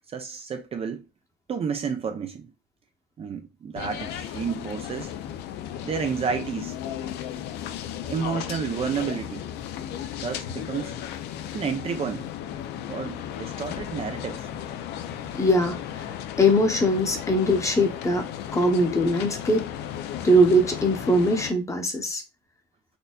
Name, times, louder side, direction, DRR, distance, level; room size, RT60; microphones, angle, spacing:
voice 1, 0.1-1.0 1.5-2.5 3.2-5.1 5.8-6.8 8.1-9.5 10.2-11.0 11.5-12.3 12.9-14.5, right 6 dB, 35° right, 0.4 m, -30 dB
sound 1, 3.8-21.5, left 10 dB, 80° left, 0.4 m, -35 dB
voice 2, 15.4-15.8 16.4-18.2 18.5-19.6 20.2-22.2, equal, 20° left, 0.8 m, -21 dB
4.2 x 2.6 x 2.3 m
cardioid pair, 110°, 17 cm